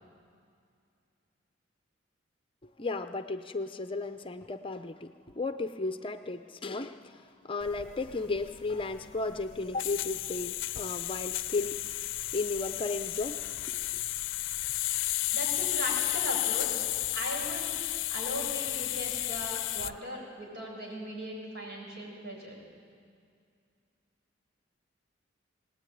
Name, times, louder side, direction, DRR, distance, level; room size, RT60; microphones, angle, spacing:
voice 1, 2.6-11.8 12.3-14.0, left 3 dB, 30° left, 0.7 m, -35 dB
sound 1, 7.6-20.0, left 15 dB, 80° left, 0.5 m, -33 dB
voice 2, 15.3-16.8 17.1-17.7 18.1-22.5, equal, 60° right, 7.8 m, -38 dB
23.0 x 19.0 x 9.4 m
head